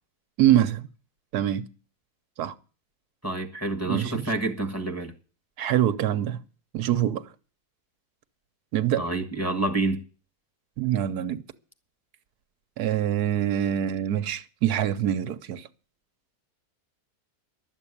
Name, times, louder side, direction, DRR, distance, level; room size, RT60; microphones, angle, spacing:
voice 1, 0.4-0.9 1.3-1.7 2.4-2.5 3.8-4.3 5.6-6.4 6.7-7.3 8.7-9.0 10.8-11.4 12.8-15.7, right 11 dB, 80° right, 1.4 m, -25 dB
voice 2, 3.2-5.1 9.0-10.0, right 2 dB, 10° left, 1.5 m, -28 dB
12.0 x 7.8 x 8.5 m
omnidirectional pair, 1.6 m